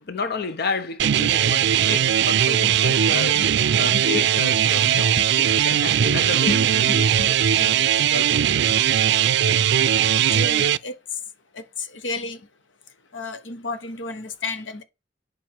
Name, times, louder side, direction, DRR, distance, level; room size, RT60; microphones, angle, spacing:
voice 1, 0.1-3.4 3.8-8.3, left 4 dB, 60° left, 0.9 m, -31 dB
sound 1, 1.0-10.8, right 9 dB, 65° right, 0.4 m, -19 dB
voice 2, 3.1-3.5 3.9-4.0 5.2-5.3 6.5-6.6 7.2-7.3 10.3-11.0 11.6-11.7 12.0-12.4 13.1-14.8, left 2 dB, 85° left, 1.1 m, -31 dB
9.3 x 5.3 x 4.6 m
head